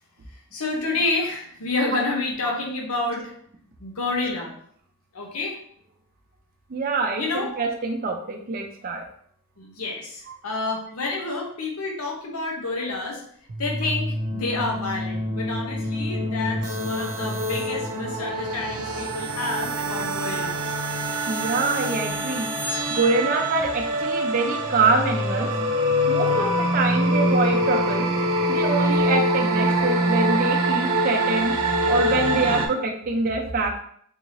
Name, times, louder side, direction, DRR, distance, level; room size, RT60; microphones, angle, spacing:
voice 1, 0.5-3.3 3.8-4.5 5.1-5.6 7.2-7.5 9.6-13.2 13.6-20.7, left 3 dB, 80° left, -1 dB, 0.8 m, -29 dB
voice 2, 6.7-9.0 10.3-10.4 21.3-22.5 22.9-25.5 26.1-28.1 28.5-31.5 31.9-33.7, right 3 dB, 40° right, 2 dB, 0.4 m, -25 dB
sound 1, 13.5-32.7, right 1 dB, 85° right, 0.7 m, -25 dB
3.6 x 2.7 x 3.0 m, 0.63 s
head